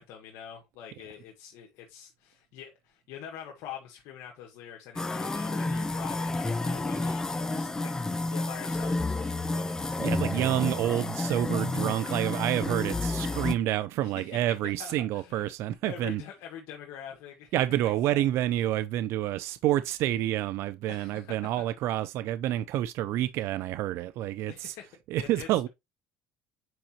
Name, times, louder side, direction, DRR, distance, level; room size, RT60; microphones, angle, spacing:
voice 1, 0.0-9.9 14.0-14.4 14.8-15.5 15.8-18.2 20.9-21.5 24.5-25.7, left 9 dB, 70° left, 1.5 m, -45 dB
sound 1, 5.0-13.6, left 2 dB, 15° left, 0.6 m, -30 dB
voice 2, 10.0-16.2 17.5-24.7 25.1-25.7, right 13 dB, 65° right, 0.5 m, -28 dB
7.7 x 4.9 x 2.9 m
cardioid pair, 120°, 5 cm